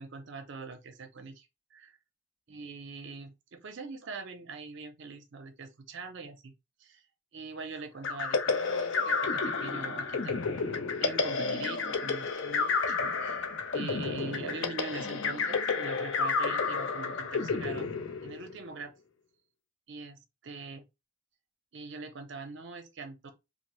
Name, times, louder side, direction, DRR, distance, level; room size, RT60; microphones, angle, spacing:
voice 1, 0.0-2.0 2.5-6.5 6.8-7.0 7.3-17.9 18.2-18.9 19.9-20.9 21.7-23.3, right 4 dB, 55° right, 0.6 m, -43 dB
sound 1, 8.0-18.6, left 4 dB, 60° left, 0.5 m, -31 dB
3.0 x 2.0 x 3.0 m
head